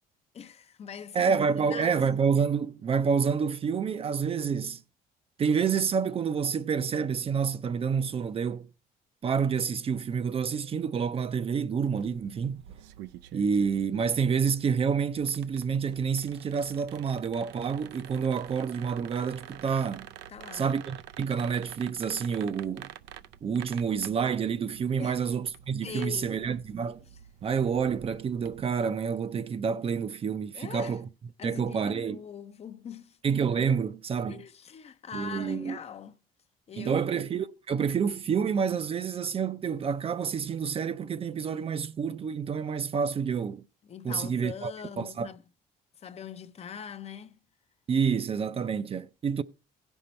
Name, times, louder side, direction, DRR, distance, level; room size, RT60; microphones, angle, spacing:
voice 1, 0.3-1.3 1.6-2.0 20.3-20.8 25.0-25.2 25.8-26.4 27.0-27.2 30.5-31.0 31.4-33.2 34.3-36.2 36.7-37.0 43.8-45.4 45.9-47.4, left 7 dB, 40° left, 0.6 m, -42 dB
voice 2, 1.1-4.8 5.4-8.7 9.2-12.6 13.3-20.1 20.5-22.9 23.4-27.0 27.4-31.0 31.4-32.2 33.2-34.4 35.1-35.8 36.8-43.6 44.0-45.3 47.9-49.4, right 6 dB, 35° right, 0.5 m, -28 dB
sound 1, 11.9-28.7, right 11 dB, 90° right, 0.5 m, -48 dB
16.0 x 5.4 x 4.2 m
cardioid pair, 110°, 17 cm